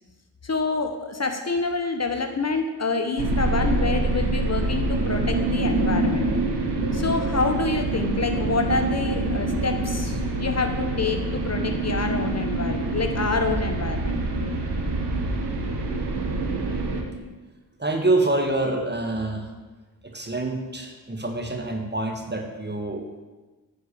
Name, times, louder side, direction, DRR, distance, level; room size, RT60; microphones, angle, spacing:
voice 1, 0.4-6.3 6.9-14.2, left 3 dB, 40° left, 6 dB, 1.0 m, -27 dB
sound 1, 3.2-17.0, right 2 dB, 85° right, 1.2 m, -25 dB
voice 2, 17.8-19.5 20.1-23.2, right 2 dB, 25° right, 3 dB, 1.6 m, -26 dB
9.4 x 4.7 x 6.9 m, 1.2 s
cardioid pair, 45°, 39 cm